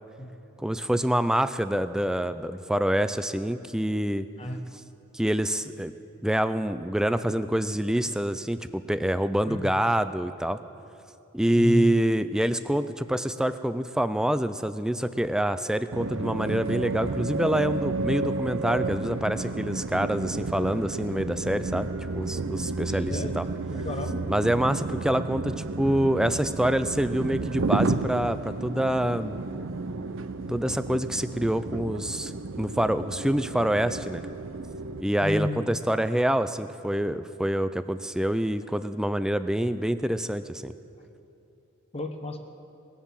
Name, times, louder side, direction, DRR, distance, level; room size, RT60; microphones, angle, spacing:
voice 1, 0.6-4.3 5.1-5.9 6.2-10.6 11.3-21.9 22.1-23.5 24.3-29.4 30.5-34.2 35.0-40.7, right 1 dB, 5° right, 12 dB, 0.3 m, -26 dB
voice 2, 11.6-11.9 23.1-23.4 23.7-24.2 35.2-35.7 41.9-42.4, left 1 dB, 30° left, 6 dB, 0.9 m, -31 dB
sound 1, 15.9-35.0, right 3 dB, 60° right, 0.6 m, -32 dB
20.0 x 7.1 x 7.4 m, 2.8 s
head